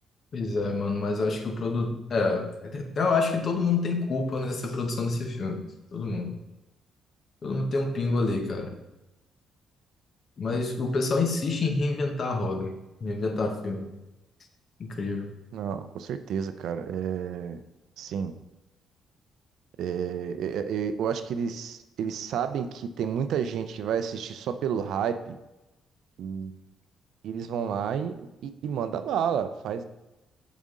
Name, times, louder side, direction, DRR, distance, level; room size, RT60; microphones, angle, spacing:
voice 1, 0.3-5.6 5.9-6.4 7.4-8.7 10.4-12.7 13.0-13.9 14.8-15.3, left 3 dB, 50° left, 4 dB, 1.0 m, -27 dB
voice 2, 15.5-17.6 18.0-18.4 19.8-25.4 26.2-26.5 27.2-29.8, right 7 dB, 75° right, 10 dB, 0.4 m, -30 dB
7.3 x 4.2 x 3.7 m, 0.99 s
cardioid pair, 90°, 0 cm